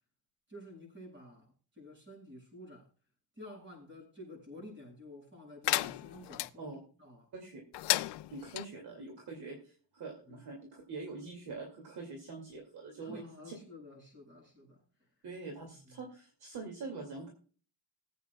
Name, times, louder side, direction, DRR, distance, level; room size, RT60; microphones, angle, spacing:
voice 1, 0.5-2.9 3.3-7.3 10.3-10.4 13.0-15.1 15.6-16.0, left 1 dB, 25° right, 6.4 m, -51 dB
sound 1, 5.6-6.5 7.7-8.7, left 16 dB, 70° left, 0.5 m, -33 dB
voice 2, 8.3-13.5 15.2-17.3, right 3 dB, 60° right, 2.5 m, -44 dB
20.5 x 8.4 x 2.3 m
cardioid pair, 165°, 43 cm